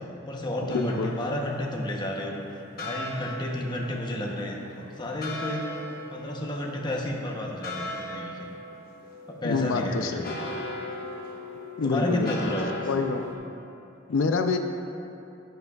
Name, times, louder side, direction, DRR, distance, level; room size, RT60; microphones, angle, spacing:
voice 1, 0.0-5.7 6.1-8.5 9.3-10.6 11.8-12.8, left 1 dB, 25° left, -1 dB, 0.8 m, -32 dB
voice 2, 0.7-1.1 9.4-10.4 11.8-12.5 12.9-13.3 14.1-14.6, left 4 dB, 80° left, 6 dB, 0.4 m, -26 dB
sound 1, 0.7-13.4, left 1 dB, 50° left, 1.0 m, -39 dB
10.5 x 9.6 x 2.4 m, 2.7 s
head